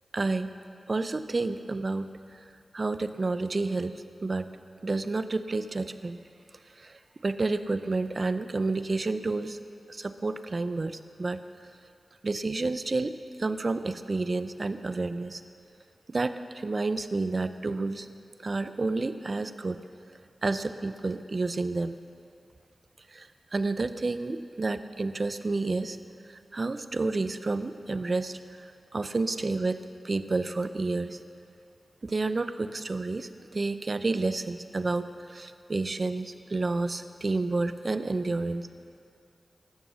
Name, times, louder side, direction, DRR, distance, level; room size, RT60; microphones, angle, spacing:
voice 1, 0.1-0.5 0.9-2.1 2.7-3.9 4.2-4.5 4.8-6.2 7.2-9.6 9.9-11.4 12.2-13.1 13.4-15.4 16.1-18.1 18.4-19.8 20.4-22.0 23.1-23.3 23.5-26.0 26.5-28.4 28.9-29.8 30.0-31.2 32.0-38.7, right 3 dB, 50° right, 11 dB, 0.7 m, -30 dB
14.0 x 11.5 x 6.4 m, 2.6 s
cardioid pair, 45°, 0 cm